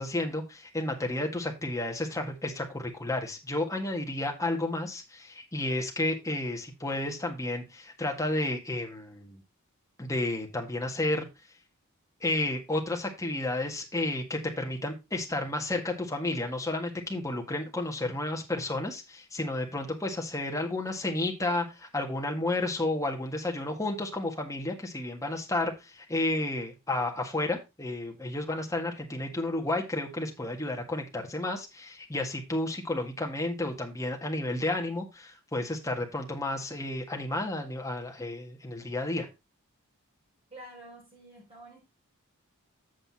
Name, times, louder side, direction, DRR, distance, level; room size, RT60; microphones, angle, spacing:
voice 1, 0.0-9.4 10.0-11.2 12.2-39.3, left 2 dB, 15° left, 1.7 m, -32 dB
voice 2, 40.5-41.8, right 1 dB, 25° right, 5.4 m, -48 dB
7.9 x 6.8 x 4.1 m
head